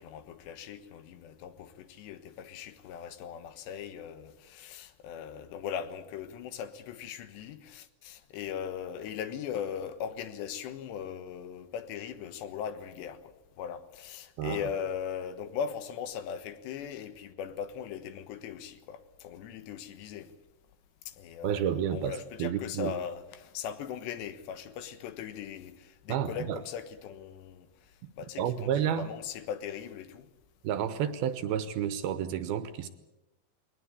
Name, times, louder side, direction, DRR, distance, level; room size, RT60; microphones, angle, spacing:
voice 1, 0.0-20.3 21.1-27.7 28.2-30.3, left 8 dB, 80° left, 3.4 m, -39 dB
voice 2, 21.4-22.9 26.1-26.6 28.4-29.1 30.6-32.9, right 9 dB, 70° right, 2.6 m, -30 dB
21.0 x 19.5 x 8.4 m
omnidirectional pair, 5.0 m